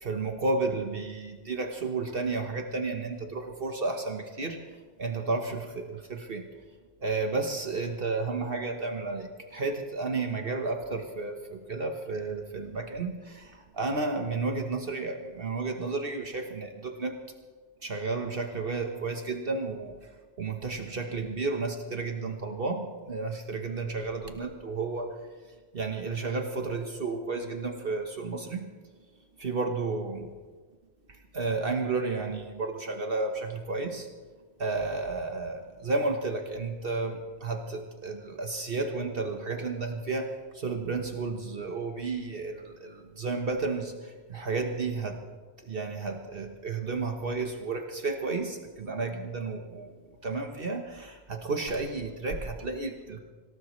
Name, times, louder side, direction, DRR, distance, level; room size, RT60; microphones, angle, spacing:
voice 1, 0.0-4.6 5.0-6.5 7.0-17.2 17.8-20.1 20.4-25.2 25.7-28.7 29.4-30.3 31.1-34.1 34.6-45.2 45.6-49.9 50.2-53.2, right 3 dB, 55° right, 4 dB, 1.4 m, -32 dB
25.5 x 18.0 x 3.2 m, 1.5 s
omnidirectional pair, 1.1 m